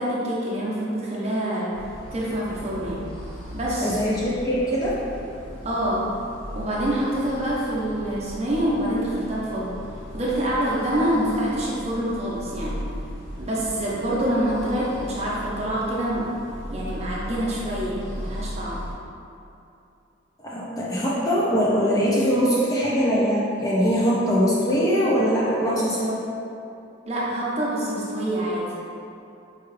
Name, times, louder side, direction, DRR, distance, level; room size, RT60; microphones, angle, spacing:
voice 1, 0.0-1.8 2.1-3.0 3.5-4.0 5.6-6.1 6.5-9.7 10.1-12.8 13.4-16.3 16.7-18.8 27.1-28.7, right 1 dB, 30° right, -6 dB, 0.6 m, -26 dB
sound 1, 1.7-18.9, equal, 45° left, 1.0 m, -37 dB
voice 2, 3.8-5.0 20.4-26.2, equal, 15° left, -6 dB, 0.4 m, -22 dB
4.6 x 2.3 x 3.1 m, 2.7 s
head